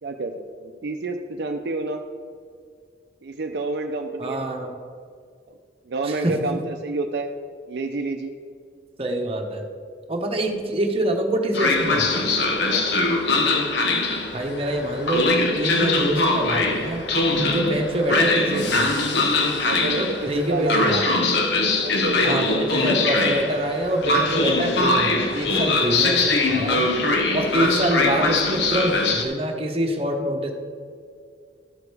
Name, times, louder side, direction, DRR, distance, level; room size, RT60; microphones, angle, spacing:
voice 1, 0.0-2.0 3.2-4.4 5.9-7.3 7.7-8.3 12.6-12.9 19.6-21.0 21.8-22.7, right 3 dB, 65° right, 4 dB, 0.5 m, -29 dB
voice 2, 4.2-4.7 6.0-6.3 9.0-9.7 10.1-12.0 14.3-17.0 17.3-18.9 19.9-21.1 22.2-26.9 27.3-30.5, right 1 dB, 35° right, 2 dB, 0.9 m, -25 dB
Train, 11.5-29.2, left 2 dB, 75° left, 0.9 m, -22 dB
12.5 x 4.9 x 4.8 m, 2.2 s
head